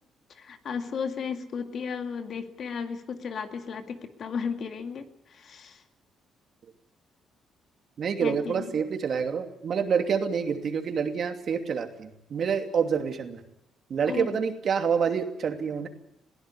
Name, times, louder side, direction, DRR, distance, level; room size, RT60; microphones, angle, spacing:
voice 1, 0.3-5.8 8.2-8.8 14.1-14.4, left 6 dB, 60° left, 7 dB, 2.2 m, -34 dB
voice 2, 8.0-13.4 13.9-15.9, right 6 dB, 55° right, 6 dB, 2.7 m, -27 dB
21.0 x 16.0 x 9.8 m, 0.78 s
cardioid pair, 90°, 0 cm